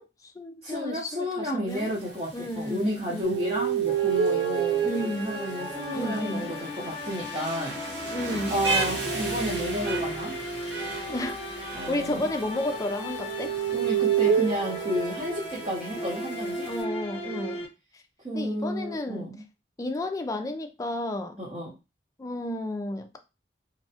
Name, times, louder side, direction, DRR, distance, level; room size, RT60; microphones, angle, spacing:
voice 1, 0.0-1.9 2.3-3.4 4.8-5.4 5.9-6.5 8.1-8.6 11.1-13.5 16.6-17.6 18.3-19.3 19.8-21.5 22.2-23.2, left 1 dB, 20° left, 0.3 m, -32 dB
voice 2, 0.6-8.0 8.5-10.4 11.7-12.3 13.7-16.7 18.2-19.4 21.4-21.7, equal, 35° right, 0.8 m, -32 dB
Rain, 1.7-16.8, right 2 dB, 85° right, 0.8 m, -38 dB
sound 1, 3.2-6.0 8.1-15.8 17.1-17.6, right 9 dB, 70° right, 0.3 m, -30 dB
sound 2, 3.8-17.6, left 1 dB, 35° left, 0.8 m, -37 dB
2.7 x 2.1 x 2.7 m
head